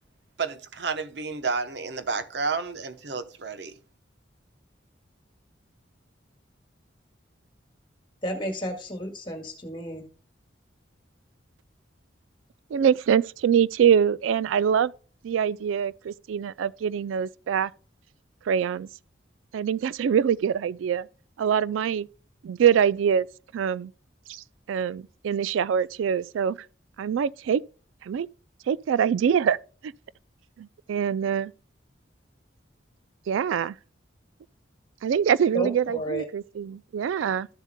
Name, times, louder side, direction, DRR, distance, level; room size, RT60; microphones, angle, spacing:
voice 1, 0.4-3.8, right 4 dB, 60° right, 0.9 m, -31 dB
voice 2, 8.2-10.1 35.5-36.3, equal, 25° left, 1.9 m, -32 dB
voice 3, 12.7-14.9 15.2-17.7 18.5-18.9 19.5-21.1 21.4-22.1 22.4-23.3 23.5-23.9 24.3-26.6 27.0-27.6 28.0-28.3 28.7-29.6 30.6-31.5 33.3-33.7 35.0-37.5, right 8 dB, 90° right, 0.3 m, -24 dB
13.5 x 7.2 x 2.2 m
head